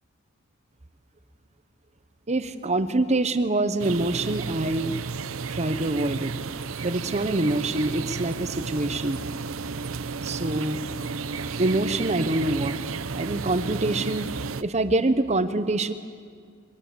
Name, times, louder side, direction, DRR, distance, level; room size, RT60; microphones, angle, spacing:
voice 1, 2.3-5.0 5.5-6.3 6.8-9.2 10.2-10.8 11.6-12.8 13.1-14.3 14.6-15.9, right 2 dB, 35° right, 11 dB, 1.0 m, -25 dB
sound 1, 3.8-14.6, right 4 dB, 90° right, 0.7 m, -32 dB
23.0 x 18.5 x 7.9 m, 2.1 s
head